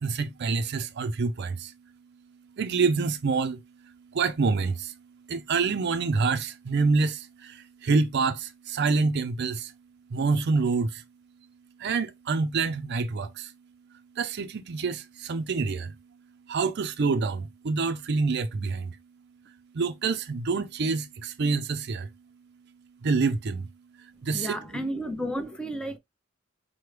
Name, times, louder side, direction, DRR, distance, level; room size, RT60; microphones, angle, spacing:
voice 1, 0.0-1.7 2.6-3.6 3.9-5.0 5.3-9.7 10.1-11.0 11.8-13.5 14.2-16.0 16.5-19.0 19.7-22.1 23.0-23.7 24.0-24.6, right 4 dB, 55° right, 0.5 m, -27 dB
voice 2, 24.3-26.0, equal, 5° left, 0.6 m, -32 dB
5.9 x 2.1 x 3.2 m
head